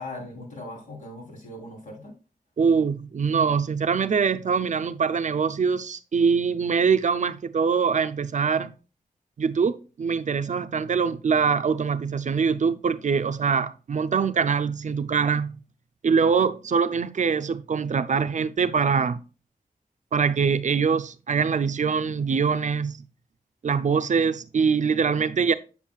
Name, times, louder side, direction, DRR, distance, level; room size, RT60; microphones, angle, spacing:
voice 1, 0.0-2.1, left 2 dB, 60° left, 3.4 m, -39 dB
voice 2, 2.6-8.7 9.4-15.6 16.0-19.2 20.1-23.0 23.6-25.5, right 6 dB, 55° right, 0.5 m, -23 dB
8.1 x 7.2 x 2.3 m
wide cardioid pair, 110°, 15 cm